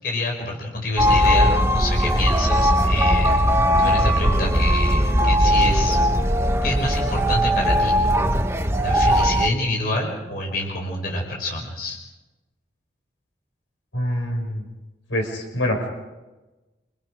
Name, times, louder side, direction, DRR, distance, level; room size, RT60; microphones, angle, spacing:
voice 1, 0.0-3.4 3.8-6.0 6.6-8.0 8.8-12.0, left 2 dB, 50° left, 0 dB, 5.2 m, -27 dB
sound 1, 1.0-9.5, equal, 15° right, 0.9 m, -19 dB
voice 2, 13.9-14.6 15.1-15.9, left 1 dB, 85° left, 2 dB, 5.7 m, -25 dB
27.5 x 25.0 x 5.1 m, 1.1 s
head